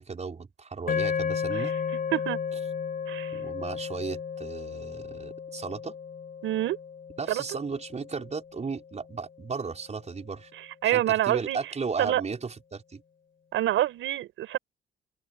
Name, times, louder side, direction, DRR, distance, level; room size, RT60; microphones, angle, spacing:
voice 1, 0.0-1.7 3.3-6.0 7.2-10.5 10.8-13.0, right 5 dB, 35° right, 5.4 m, -35 dB
sound 1, 0.9-9.2, left 6 dB, 45° left, 4.4 m, -34 dB
voice 2, 3.1-3.4 6.4-6.8 7.3-7.4 10.5-11.6 12.0-12.2 13.5-14.6, right 13 dB, 85° right, 6.0 m, -27 dB
open air
cardioid pair, 90°, 20 cm